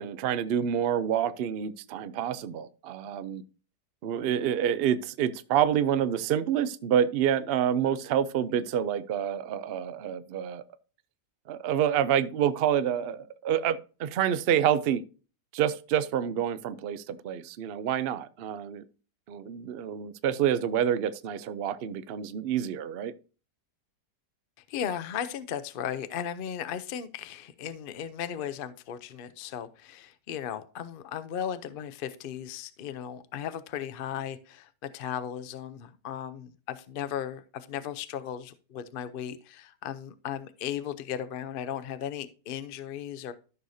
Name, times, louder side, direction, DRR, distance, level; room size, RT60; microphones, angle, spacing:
voice 1, 0.0-3.4 4.0-10.6 11.5-15.0 15.5-18.8 19.3-23.1, right 9 dB, 80° right, 0.5 m, -28 dB
voice 2, 24.7-43.3, left 9 dB, 65° left, 0.5 m, -36 dB
13.5 x 6.4 x 2.7 m
omnidirectional pair, 1.8 m